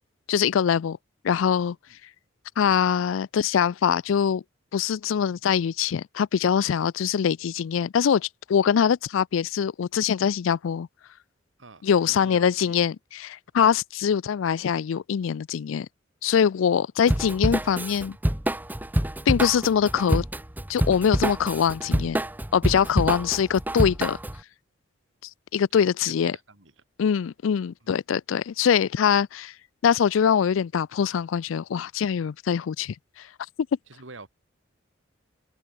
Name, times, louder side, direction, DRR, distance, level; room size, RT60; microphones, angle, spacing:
voice 1, 0.3-1.0 1.2-1.8 2.6-4.4 4.7-10.9 11.8-15.9 16.2-18.2 19.3-20.2 20.7-22.2 22.5-24.2 25.5-26.4 27.0-29.5 29.8-33.3, left 7 dB, 85° left, 0.4 m, -23 dB
voice 2, 11.6-12.8 13.6-13.7 23.2-23.3 25.7-26.7 27.8-27.9 33.9-34.3, right 3 dB, 70° right, 2.5 m, -47 dB
Drum kit / Drum, 17.1-24.4, right 1 dB, 10° right, 0.8 m, -26 dB
head